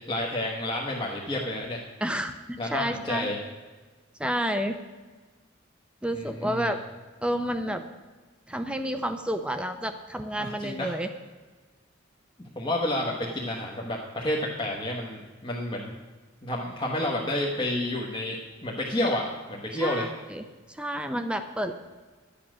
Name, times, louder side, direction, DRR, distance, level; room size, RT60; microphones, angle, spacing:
voice 1, 0.0-1.8 2.6-3.4 6.1-6.7 10.4-10.9 12.4-15.9 16.4-20.1, left 1 dB, 25° left, -3 dB, 1.2 m, -30 dB
voice 2, 2.0-3.3 4.2-4.8 6.0-6.8 7.2-7.8 8.5-11.1 19.7-21.7, equal, 5° right, 8 dB, 0.6 m, -30 dB
12.0 x 8.5 x 6.2 m, 1.3 s
head